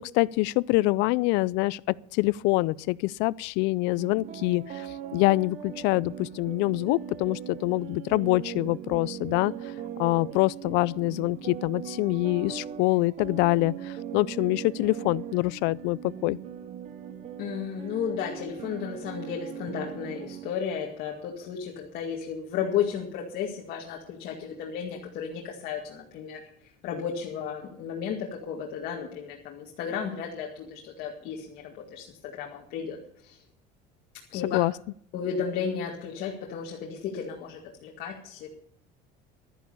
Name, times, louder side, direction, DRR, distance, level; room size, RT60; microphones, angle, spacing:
voice 1, 0.0-9.5 10.0-16.4 34.3-34.7, left 21 dB, 70° left, 0.4 m, -25 dB
sound 1, 4.0-20.5, right 9 dB, 40° right, 0.9 m, -40 dB
voice 2, 17.4-26.4 26.8-33.0 33.2-33.4 34.3-34.6 35.1-38.5, left 7 dB, 55° left, 2.1 m, -33 dB
12.0 x 11.0 x 7.0 m
cardioid pair, 160°, 18 cm